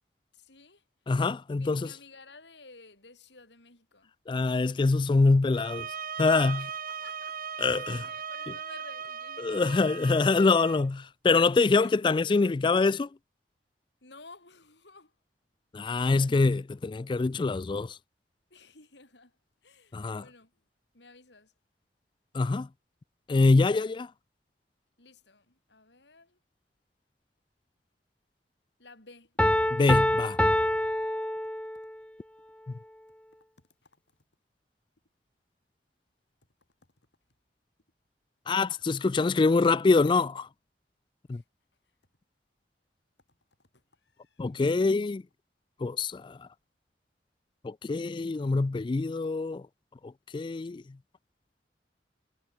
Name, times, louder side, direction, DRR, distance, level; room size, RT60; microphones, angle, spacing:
voice 1, 0.3-0.8 1.6-4.1 6.6-9.8 11.8-11.9 14.0-15.1 18.5-20.5 20.9-21.5 25.0-26.4 28.8-29.4 33.6-33.9 41.3-41.4 43.6-44.5, left 3 dB, 85° left, 6.4 m, -54 dB
voice 2, 1.1-1.9 4.3-5.9 6.2-6.7 7.6-8.1 9.4-13.1 15.7-18.0 19.9-20.2 22.3-22.7 23.3-24.1 29.7-30.4 38.5-40.5 41.3-41.4 44.4-45.2 45.8-46.5 47.6-49.6 50.0-50.8, left 3 dB, 25° left, 0.3 m, -25 dB
sound 1, 5.5-10.8, right 6 dB, 50° right, 1.1 m, -38 dB
Piano, 29.4-32.0, left 1 dB, 5° left, 1.1 m, -26 dB
head